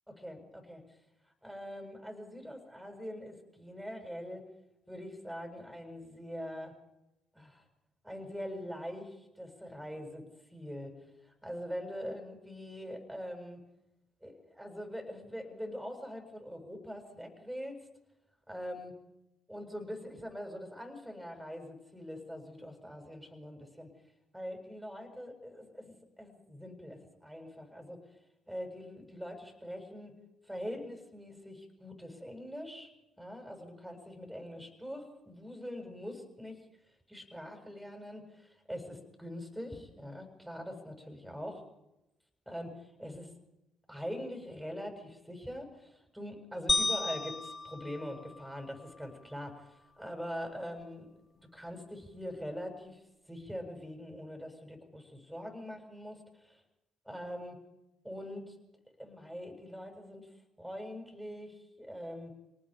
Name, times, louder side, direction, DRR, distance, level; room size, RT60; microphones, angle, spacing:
voice 1, 0.1-0.8 1.4-4.5 4.9-6.8 7.3-7.6 8.0-11.0 11.2-13.6 14.2-17.8 18.5-19.0 19.5-23.9 24.3-28.0 28.5-30.1 30.5-32.9 33.2-36.6 37.1-41.6 42.5-43.3 43.9-51.1 51.5-53.0 53.3-56.6 57.1-57.6 58.0-58.6 59.0-60.3 60.6-62.3, equal, 5° right, 4 dB, 7.3 m, -43 dB
sound 1, 46.7-49.1, left 2 dB, 20° left, 1.1 m, -34 dB
26.0 x 19.5 x 5.2 m, 0.93 s
hypercardioid pair, 45°, 0 cm